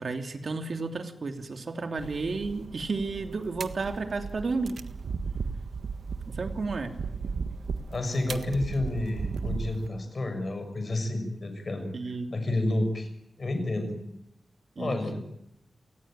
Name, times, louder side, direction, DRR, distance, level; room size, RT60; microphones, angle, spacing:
voice 1, 0.0-4.8 6.3-7.0 11.9-12.3 14.8-15.0, right 3 dB, 50° right, 6 dB, 3.0 m, -32 dB
sound 1, 2.0-9.9, right 5 dB, 70° right, 1.5 m, -36 dB
voice 2, 7.9-13.1 13.4-14.0 14.8-15.2, left 2 dB, 40° left, 7 dB, 6.3 m, -30 dB
30.0 x 19.0 x 9.1 m, 0.80 s
wide cardioid pair, 160°, 0 cm